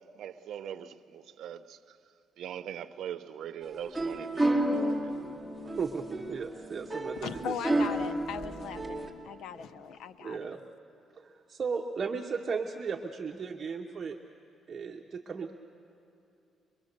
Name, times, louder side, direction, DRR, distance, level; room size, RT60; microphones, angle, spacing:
voice 1, 0.0-2.0 2.4-5.1, right 9 dB, 75° right, 0.7 m, -41 dB
sound 1, 3.6-9.1, right 1 dB, 5° left, 2.3 m, -31 dB
voice 2, 5.6-7.9 10.2-10.6 11.1-14.2 14.7-15.5, right 5 dB, 35° right, 0.9 m, -36 dB
voice 3, 7.2-10.5, left 8 dB, 75° left, 0.7 m, -39 dB
24.0 x 23.0 x 6.6 m
cardioid pair, 130°, 0 cm